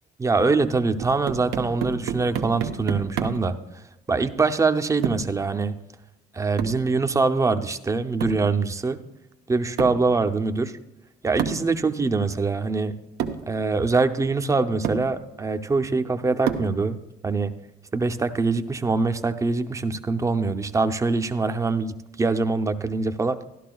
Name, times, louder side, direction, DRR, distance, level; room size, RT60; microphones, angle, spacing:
voice 1, 0.2-3.5 4.1-5.7 6.3-9.0 9.5-10.7 11.2-13.0 13.5-17.0 17.2-17.5 17.9-23.4, right 3 dB, 20° right, 8 dB, 0.6 m, -23 dB
sound 1, 1.0-3.5 5.0-5.4 6.6-6.9 8.2-8.5 9.8-10.1 11.4-11.7 12.7-12.8 13.2-13.5 14.3-14.4 14.8-15.1 16.5-16.8, right 8 dB, 85° right, 0.9 m, -30 dB
13.5 x 11.5 x 2.3 m, 0.92 s
cardioid pair, 110°, 17 cm